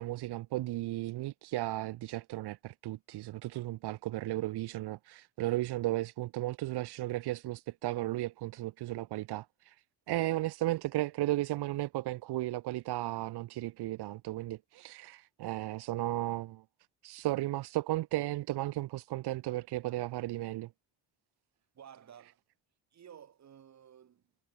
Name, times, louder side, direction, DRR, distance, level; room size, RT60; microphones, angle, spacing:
voice 1, 0.0-9.8 10.1-16.6 17.0-20.7, right 16 dB, 85° right, 1.5 m, -35 dB
voice 2, 21.7-22.4 22.9-24.2, right 9 dB, 45° right, 7.4 m, -54 dB
cardioid pair, 165°, 39 cm